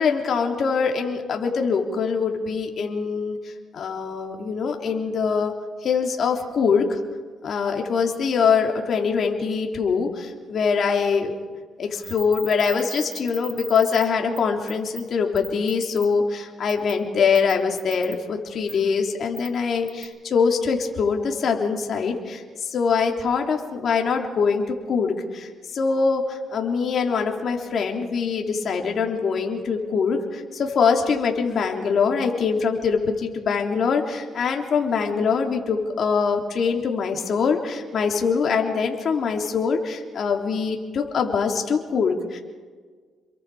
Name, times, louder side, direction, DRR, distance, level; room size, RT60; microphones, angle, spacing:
voice 1, 0.0-5.5 5.8-7.0 7.4-11.3 11.8-42.4, left 5 dB, 60° left, 2 dB, 3.4 m, -23 dB
sound 1, 12.0-14.1 14.4-14.5 14.7-15.0 15.4-16.1 16.7-16.9 17.3-18.2 18.7-18.8 19.4-19.5 19.9-20.0, right 5 dB, 40° right, 4.8 m, -37 dB
28.5 x 23.0 x 5.0 m, 1.5 s
cardioid pair, 90°, 0 cm